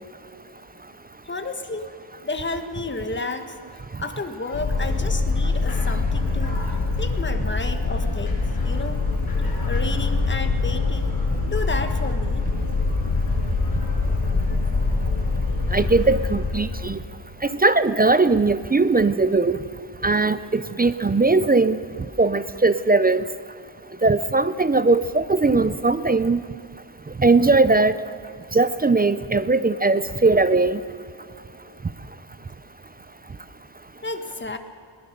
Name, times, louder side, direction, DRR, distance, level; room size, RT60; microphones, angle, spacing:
voice 1, 1.2-1.9 2.2-3.6 4.0-6.6 7.0-9.0 9.7-11.1 11.4-12.4 34.0-34.6, left 3 dB, 25° left, 7 dB, 1.5 m, -31 dB
sound 1, 4.5-16.9, left 3 dB, 50° left, 7.1 m, -24 dB
voice 2, 15.7-17.0 17.6-19.6 20.0-21.8 22.2-23.2 24.0-26.4 27.2-27.9 28.5-30.8, right 3 dB, 20° right, 13 dB, 0.5 m, -19 dB
21.5 x 19.5 x 6.7 m, 2.5 s
wide cardioid pair, 150°, 47 cm